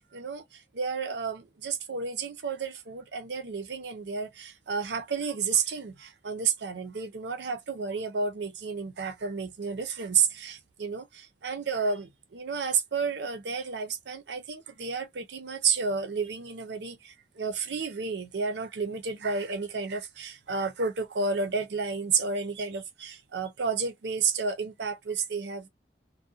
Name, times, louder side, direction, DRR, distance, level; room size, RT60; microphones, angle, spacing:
voice 1, 0.0-25.7, right 5 dB, 75° right, 0.6 m, -31 dB
2.6 x 2.1 x 2.3 m
head